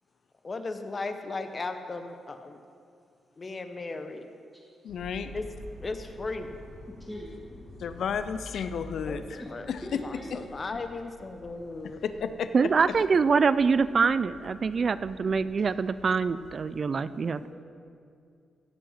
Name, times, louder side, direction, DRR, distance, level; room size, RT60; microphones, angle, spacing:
voice 1, 0.4-2.6 3.4-4.3 5.3-5.4 5.8-6.5 9.0-9.7 10.0-12.0 12.7-12.8, left 3 dB, 35° left, 8 dB, 0.8 m, -36 dB
voice 2, 4.8-5.3 7.8-10.0 10.3-10.4 12.0-13.0, left 6 dB, 70° left, 11 dB, 0.5 m, -33 dB
sound 1, 4.9-16.5, left 1 dB, 50° left, 3.0 m, -48 dB
voice 3, 7.0-7.3 8.9-9.5 9.8-10.3 12.1-12.3 16.3-16.5 16.9-17.5, equal, 10° left, -6 dB, 1.6 m, -44 dB
voice 4, 12.5-17.5, right 5 dB, 45° right, 15 dB, 0.3 m, -24 dB
15.5 x 5.7 x 5.6 m, 2.4 s
cardioid pair, 105°, 0 cm